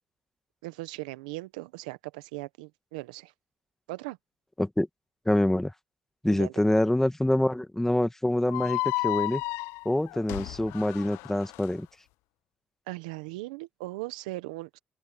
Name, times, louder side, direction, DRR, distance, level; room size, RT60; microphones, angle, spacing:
voice 1, 0.6-3.3 3.9-4.2 6.3-6.5 12.9-14.8, right 20 dB, 90° right, 1.1 m, -38 dB
voice 2, 5.3-5.7 6.2-9.4 9.9-11.9, left 1 dB, 10° left, 1.9 m, -26 dB
sound 1, 8.5-11.7, left 24 dB, 80° left, 0.3 m, -32 dB
open air
hypercardioid pair, 50°, 4 cm